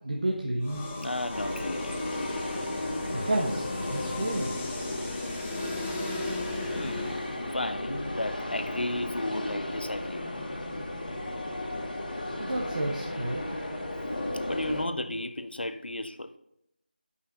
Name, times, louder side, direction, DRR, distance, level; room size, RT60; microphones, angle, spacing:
voice 1, 0.0-0.8 3.1-4.6 12.4-13.6, right 1 dB, 50° right, 1.1 m, -31 dB
sound 1, 0.6-7.5, left 2 dB, 10° left, 0.5 m, -37 dB
voice 2, 1.0-2.0 6.7-7.2 7.5-10.2 14.4-16.3, left 1 dB, 85° left, 0.8 m, -33 dB
sound 2, 1.3-14.8, left 1 dB, 60° left, 2.1 m, -35 dB
7.5 x 5.6 x 5.1 m
figure-of-eight pair, 175°, 5 cm